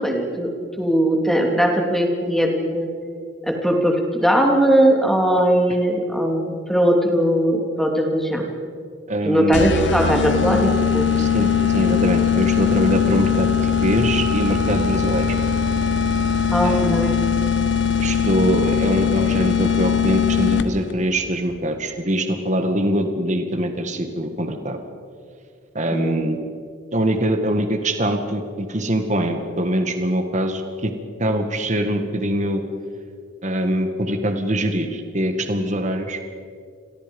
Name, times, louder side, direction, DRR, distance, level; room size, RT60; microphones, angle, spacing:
voice 1, 0.0-2.9 3.4-8.5 9.2-11.1 16.5-17.2 25.9-26.2, right 1 dB, ahead, 2 dB, 2.9 m, -19 dB
voice 2, 9.1-9.7 11.1-15.4 16.6-17.1 18.0-24.8 25.7-26.4 26.9-30.9 31.2-32.6 33.4-36.2, equal, 40° right, 6 dB, 1.9 m, -23 dB
sound 1, 9.5-20.9, left 7 dB, 65° left, 1.1 m, -20 dB
29.0 x 23.5 x 5.5 m, 2.2 s
head